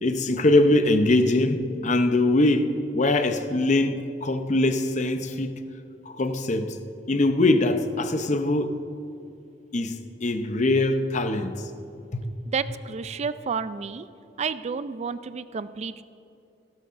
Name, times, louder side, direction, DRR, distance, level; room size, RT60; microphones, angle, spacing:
voice 1, 0.0-5.5 6.1-6.8 7.1-8.8 9.7-11.6 12.1-12.2, left 2 dB, 40° left, 0.7 m, -22 dB
voice 2, 12.5-14.1 14.4-16.0, right 5 dB, 35° right, 0.3 m, -31 dB
16.5 x 12.5 x 2.6 m
head